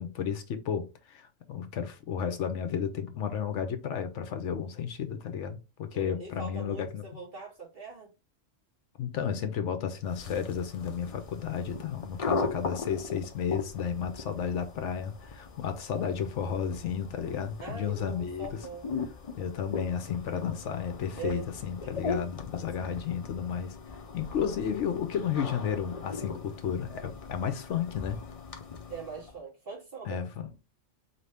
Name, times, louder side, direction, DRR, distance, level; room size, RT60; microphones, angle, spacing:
voice 1, 0.0-7.1 9.0-18.6 19.4-28.2 30.0-30.5, left 7 dB, 70° left, 0.9 m, -33 dB
voice 2, 5.9-8.1 17.6-18.9 21.2-21.5 21.8-22.2 22.5-22.9 28.9-30.2, right 4 dB, 45° right, 2.1 m, -42 dB
sound 1, 10.0-29.4, left 4 dB, 40° left, 0.5 m, -39 dB
4.2 x 2.7 x 3.3 m
omnidirectional pair, 1.3 m